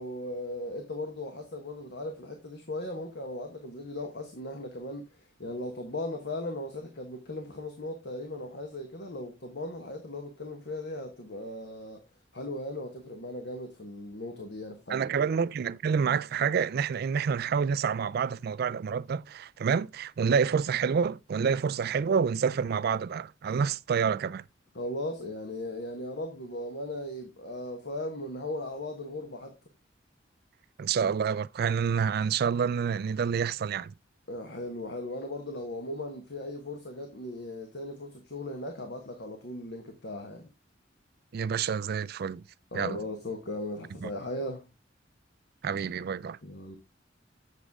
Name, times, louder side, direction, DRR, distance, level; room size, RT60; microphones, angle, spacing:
voice 1, 0.0-12.0 12.3-15.0 24.7-29.5 34.3-40.5 42.7-44.7 46.4-46.8, left 1 dB, 60° left, 1.4 m, -37 dB
voice 2, 14.9-24.4 30.8-33.9 41.3-42.4 42.7-43.0 44.0-44.1 45.6-46.4, right 6 dB, 55° right, 0.3 m, -28 dB
8.1 x 6.4 x 3.5 m
head